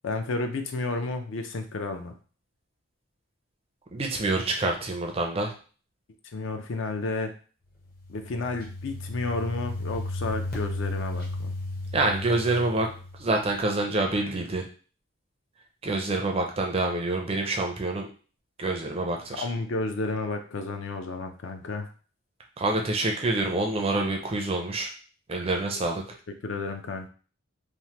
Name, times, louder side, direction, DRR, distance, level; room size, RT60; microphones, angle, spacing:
voice 1, 0.0-2.1 6.3-7.3 8.1-11.5 19.4-21.9 26.4-27.1, left 3 dB, 60° left, 6 dB, 0.4 m, -31 dB
voice 2, 3.9-5.5 11.9-12.9 13.2-14.7 15.8-18.1 18.6-19.5 22.6-24.9 25.3-26.0, right 2 dB, 25° right, 2 dB, 0.4 m, -27 dB
sound 1, 7.9-13.5, left 2 dB, 45° left, 0.8 m, -34 dB
3.1 x 2.0 x 2.9 m, 0.39 s
head